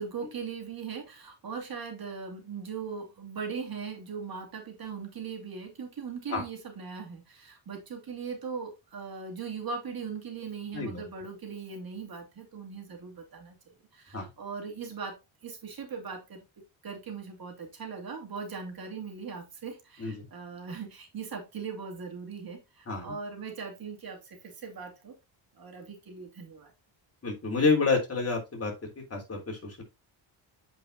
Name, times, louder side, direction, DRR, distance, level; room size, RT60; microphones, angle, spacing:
voice 1, 0.0-16.4 16.8-25.2 25.5-26.7, right 5 dB, 45° right, 2.8 m, -39 dB
voice 2, 27.2-29.8, left 4 dB, 30° left, 3.6 m, -29 dB
8.3 x 5.3 x 2.8 m
cardioid pair, 105°, 48 cm